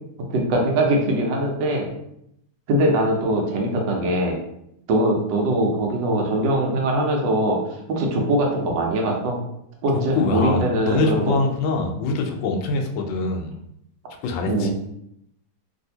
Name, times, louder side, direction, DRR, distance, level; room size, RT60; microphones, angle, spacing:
voice 1, 0.3-1.9 2.7-4.4 4.9-9.4 9.8-11.4 14.5-14.7, right 1 dB, 70° right, 0 dB, 1.4 m, -22 dB
voice 2, 10.1-13.5 14.2-14.7, left 3 dB, 80° left, 3 dB, 1.3 m, -24 dB
3.3 x 2.7 x 2.7 m, 0.77 s
omnidirectional pair, 2.2 m